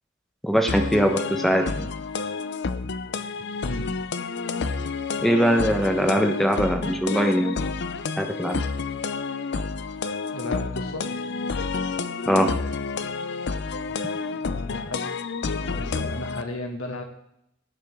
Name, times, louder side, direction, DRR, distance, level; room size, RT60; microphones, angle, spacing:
voice 1, 0.4-1.9 5.2-7.6 8.2-8.6 12.3-12.5, equal, ahead, 5 dB, 1.1 m, -22 dB
sound 1, 0.7-16.4, left 4 dB, 55° left, 0.6 m, -29 dB
voice 2, 10.3-11.2 14.3-15.1 15.4-17.0, left 2 dB, 70° left, 3 dB, 2.1 m, -34 dB
17.5 x 7.6 x 3.7 m, 0.78 s
head